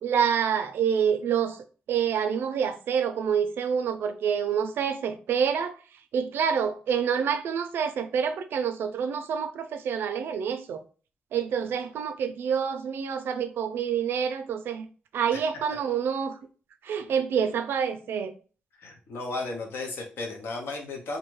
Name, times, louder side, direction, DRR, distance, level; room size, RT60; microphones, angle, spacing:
voice 1, 0.0-1.6 1.9-5.7 6.1-10.8 11.3-14.9 15.1-16.4 16.8-18.3, right 7 dB, 85° right, 0.3 m, -27 dB
voice 2, 18.8-21.2, left 3 dB, 90° left, 0.7 m, -34 dB
2.6 x 2.2 x 3.1 m
cardioid pair, 100°, 4 cm